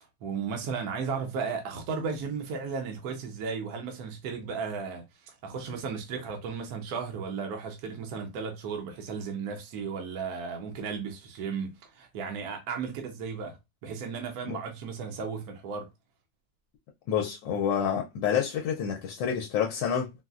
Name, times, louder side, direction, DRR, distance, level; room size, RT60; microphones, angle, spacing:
voice 1, 0.0-13.6 13.8-15.9, right 5 dB, 65° right, 1.1 m, -35 dB
voice 2, 17.1-20.1, left 8 dB, 90° left, 1.3 m, -28 dB
4.0 x 2.0 x 2.3 m
omnidirectional pair, 2.0 m